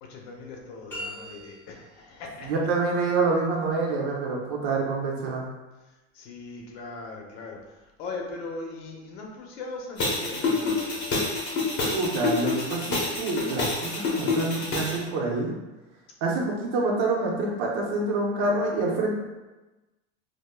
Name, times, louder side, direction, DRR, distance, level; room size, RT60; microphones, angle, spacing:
voice 1, 0.0-2.5 6.1-11.1, left 3 dB, 90° left, 0 dB, 0.8 m, -39 dB
sound 1, 0.9-2.0, equal, 5° left, 1.0 m, -39 dB
voice 2, 2.4-5.5 11.8-15.6 16.2-19.1, right 3 dB, 65° right, -1 dB, 0.9 m, -27 dB
sound 2, 10.0-15.0, left 3 dB, 35° left, 0.8 m, -27 dB
5.0 x 2.1 x 2.2 m, 1.1 s
cardioid pair, 170°, 32 cm